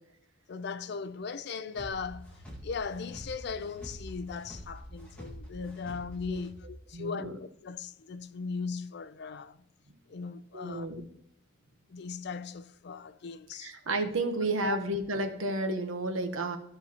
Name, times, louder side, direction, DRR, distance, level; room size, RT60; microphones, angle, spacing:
voice 1, 0.5-2.4 2.6-9.6 10.1-11.0 11.9-13.7 14.6-14.8, left 5 dB, 55° left, 0.4 m, -38 dB
sound 1, 1.7-6.8, equal, 5° left, 1.9 m, -46 dB
voice 2, 6.9-7.3 10.5-11.0 13.6-16.6, right 2 dB, 80° right, 1.1 m, -31 dB
14.0 x 5.5 x 2.9 m
head